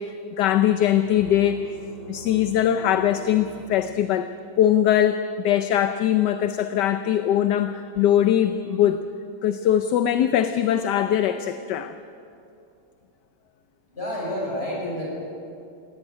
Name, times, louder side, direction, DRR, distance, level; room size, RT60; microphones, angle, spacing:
voice 1, 0.0-1.6 2.1-4.3 4.6-9.0 9.4-11.9, left 10 dB, 70° left, 10 dB, 1.2 m, -21 dB
sound 1, 1.0-4.6, right 2 dB, 60° right, 7.3 m, -43 dB
voice 2, 13.9-15.2, left 1 dB, 30° left, -4 dB, 7.0 m, -29 dB
18.0 x 17.0 x 9.8 m, 2.6 s
omnidirectional pair, 2.1 m